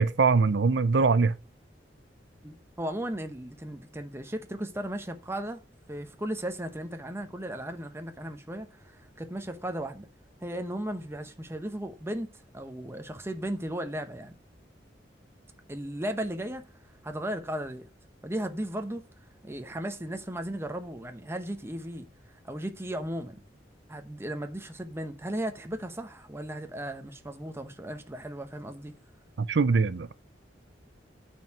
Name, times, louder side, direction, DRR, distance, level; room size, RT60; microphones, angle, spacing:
voice 1, 0.0-1.3 29.5-30.1, right 4 dB, 75° right, 0.5 m, -22 dB
voice 2, 2.4-5.6 5.9-10.1 10.4-12.3 12.5-14.3 15.7-16.7 17.0-17.9 18.2-19.0 19.4-22.1 22.4-23.4 23.9-28.9, right 1 dB, 15° right, 0.9 m, -36 dB
9.1 x 4.6 x 6.0 m
head